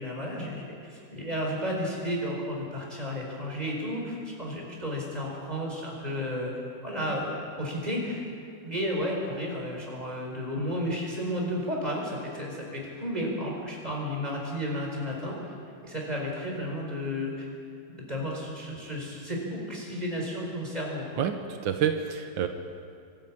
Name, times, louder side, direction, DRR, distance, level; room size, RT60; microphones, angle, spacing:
voice 1, 0.0-6.5 6.8-8.2 8.6-15.5 15.8-17.5 17.9-21.0, equal, 20° right, -2 dB, 4.8 m, -32 dB
voice 2, 21.2-22.5, right 8 dB, 85° right, 6 dB, 1.7 m, -28 dB
22.5 x 13.0 x 8.8 m, 2.4 s
omnidirectional pair, 2.0 m